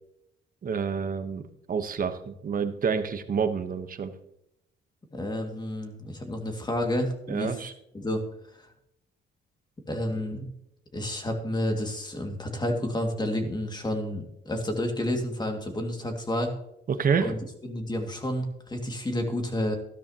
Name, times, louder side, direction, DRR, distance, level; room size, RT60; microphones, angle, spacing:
voice 1, 0.6-1.4 1.7-4.1 7.3-7.7 16.9-17.3, right 6 dB, 45° right, 9 dB, 1.1 m, -28 dB
voice 2, 5.1-7.6 7.9-8.2 9.9-10.5 10.9-16.5 17.2-17.4 17.6-19.7, left 1 dB, 20° left, 3 dB, 2.2 m, -30 dB
13.5 x 12.0 x 2.9 m, 0.80 s
cardioid pair, 90°, 20 cm